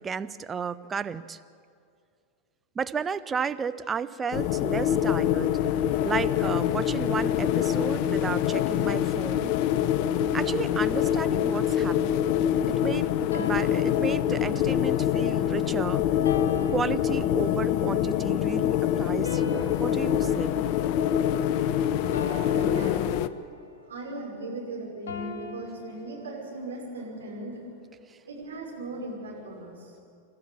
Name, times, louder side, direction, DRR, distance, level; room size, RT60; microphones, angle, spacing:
voice 1, 0.0-1.4 2.7-5.6 6.0-9.5 10.3-12.3 12.8-16.0 16.7-20.6 28.1-28.2, right 6 dB, 20° right, 13 dB, 0.6 m, -33 dB
sound 1, 4.3-23.3, left 10 dB, 45° left, 0.7 m, -25 dB
sound 2, 13.3-14.7 16.2-17.7 19.2-21.6 22.1-23.7 25.1-26.6, left 4 dB, 60° left, 2.3 m, -40 dB
voice 2, 22.5-23.2 23.9-27.6 28.3-30.0, right 1 dB, 65° right, -2 dB, 5.8 m, -38 dB
28.0 x 13.5 x 7.2 m, 2.3 s
figure-of-eight pair, 90°, 0 cm